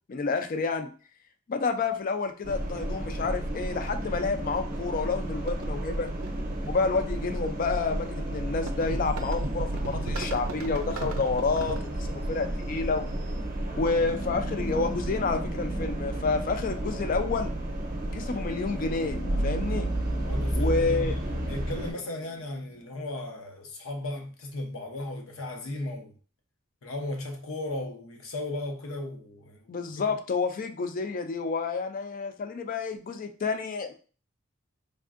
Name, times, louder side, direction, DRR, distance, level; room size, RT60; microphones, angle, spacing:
voice 1, 0.1-0.9 1.5-6.1 6.7-13.1 13.8-17.5 18.1-19.9 20.5-21.1 29.7-33.9, left 4 dB, 40° left, 0.3 m, -29 dB
sound 1, 1.8-1.9 3.4-3.6 3.9-4.1 4.7-4.9 5.2-7.3 8.4-11.8, right 3 dB, 85° right, 0.4 m, -38 dB
sound 2, 2.4-21.9, right 1 dB, 40° right, 0.7 m, -32 dB
sound 3, 13.9-22.8, equal, 60° left, 1.1 m, -42 dB
voice 2, 20.1-26.1 26.8-30.1, left 2 dB, 80° left, 0.7 m, -36 dB
3.5 x 2.5 x 2.4 m
head